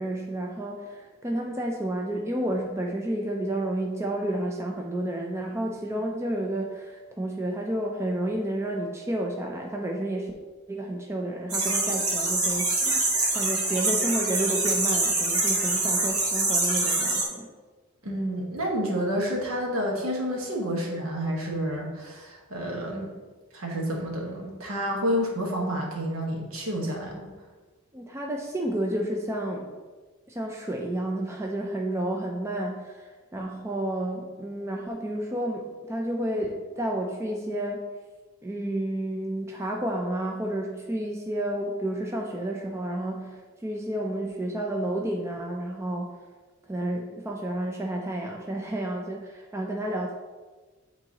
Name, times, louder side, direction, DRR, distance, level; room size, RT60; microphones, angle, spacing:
voice 1, 0.0-10.3 10.7-13.0 13.3-17.5 27.9-29.8 30.3-37.9 38.4-46.2 46.7-50.1, right 1 dB, 10° right, 1 dB, 0.4 m, -31 dB
sound 1, 11.5-17.2, right 2 dB, 90° right, 1.7 m, -25 dB
voice 2, 18.0-23.1 23.5-27.3, equal, 70° right, -1 dB, 1.3 m, -29 dB
8.7 x 3.8 x 2.9 m, 1.4 s
head